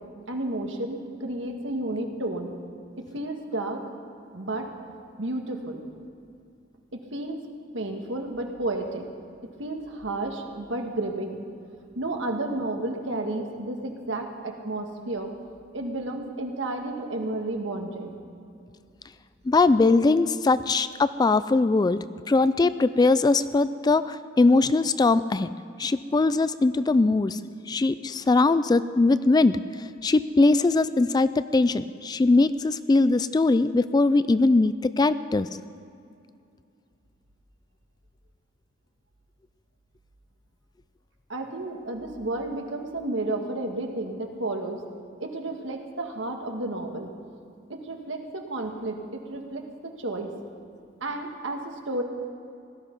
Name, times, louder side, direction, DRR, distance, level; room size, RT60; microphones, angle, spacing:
voice 1, 0.3-2.5 3.0-3.8 4.3-4.7 5.2-5.8 6.9-7.4 7.7-9.1 9.6-11.4 12.0-15.3 15.7-18.1 41.3-44.8 45.2-47.1 47.7-50.3 51.0-52.0, right 2 dB, 70° right, 3 dB, 1.8 m, -32 dB
voice 2, 19.5-22.0 22.3-25.5 25.8-27.4 27.7-29.6 30.0-35.5, left 3 dB, 20° left, 14 dB, 0.3 m, -21 dB
17.5 x 14.0 x 5.3 m, 2.4 s
head